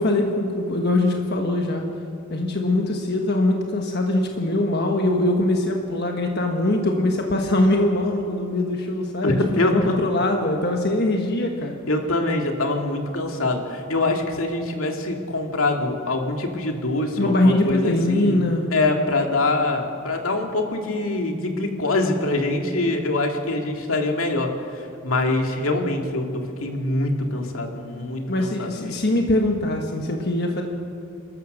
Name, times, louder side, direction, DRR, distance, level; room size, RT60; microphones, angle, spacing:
voice 1, 0.0-1.9 2.3-11.8 17.2-18.7 28.3-30.6, left 1 dB, 50° left, 2 dB, 1.5 m, -22 dB
voice 2, 9.2-10.0 11.9-18.4 18.7-28.9, left 2 dB, 80° left, 3 dB, 2.3 m, -24 dB
29.0 x 13.5 x 6.6 m, 2.5 s
head